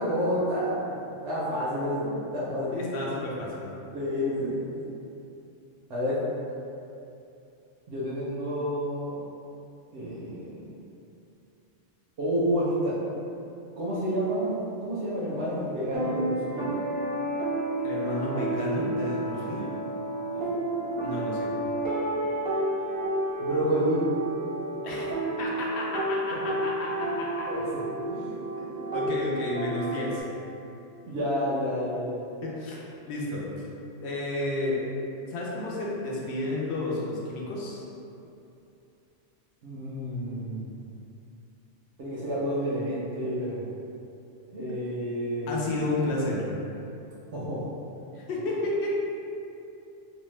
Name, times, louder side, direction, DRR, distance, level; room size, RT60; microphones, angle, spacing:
voice 1, 0.0-2.8 3.9-4.8 5.9-6.2 7.9-9.1 9.9-10.7 12.2-13.0 13.8-16.7 19.6-19.7 20.3-20.5 23.4-24.1 26.3-26.4 27.5-28.4 31.0-32.3 39.6-40.7 42.0-43.6 44.5-45.7 47.3-47.7, equal, 75° right, -9 dB, 0.9 m, -29 dB
voice 2, 2.7-3.6 17.8-19.7 21.0-21.5 24.8-25.1 25.4-27.5 28.6-30.2 32.4-33.6 34.0-34.8 35.2-37.8 45.5-46.5 48.1-49.0, left 2 dB, 65° left, -4 dB, 0.8 m, -31 dB
sound 1, 15.8-30.2, right 1 dB, 25° right, 0.5 m, -31 dB
2.7 x 2.1 x 3.1 m, 2.7 s
omnidirectional pair, 1.3 m